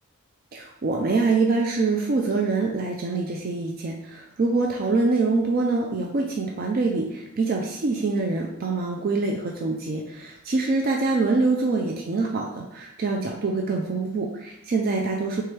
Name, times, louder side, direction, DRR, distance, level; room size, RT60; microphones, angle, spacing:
voice 1, 0.5-15.4, right 3 dB, 45° right, 1 dB, 0.4 m, -25 dB
4.5 x 3.4 x 3.2 m, 0.93 s
head